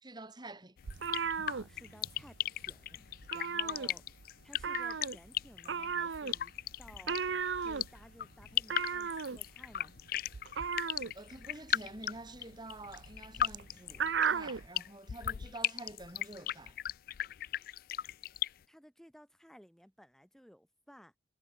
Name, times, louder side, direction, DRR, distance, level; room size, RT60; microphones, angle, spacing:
voice 1, 0.0-0.8 11.1-16.8, right 2 dB, 25° right, 2.5 m, -48 dB
sound 1, 0.8-18.5, left 11 dB, 50° left, 0.3 m, -37 dB
sound 2, 0.8-2.4 2.6-2.9 3.1-4.2 4.6-14.7, right 6 dB, 80° right, 0.7 m, -36 dB
voice 2, 1.5-4.0 4.4-6.5 6.8-9.9 17.6-17.8 18.7-21.1, equal, ahead, 1.7 m, -57 dB
head